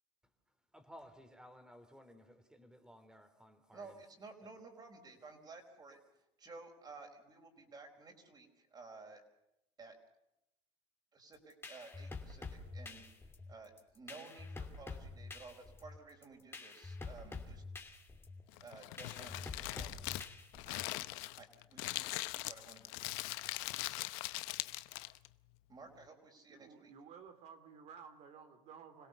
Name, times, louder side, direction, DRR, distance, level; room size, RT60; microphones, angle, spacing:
voice 1, 0.7-4.0, equal, 5° right, 8 dB, 3.4 m, -57 dB
voice 2, 3.7-9.2 9.8-10.0 11.1-13.0 13.5-17.6 18.6-20.0 21.3-23.3 25.7-26.9, right 3 dB, 30° right, 3 dB, 4.8 m, -54 dB
sound 1, 11.3-21.0, left 3 dB, 15° left, 2.9 m, -47 dB
Crumpling crinkling, 18.5-25.3, left 20 dB, 75° left, 0.8 m, -41 dB
voice 3, 26.5-29.1, right 6 dB, 55° right, 9 dB, 2.8 m, -55 dB
26.5 x 17.0 x 7.1 m, 0.85 s
supercardioid pair, 105°, 14 cm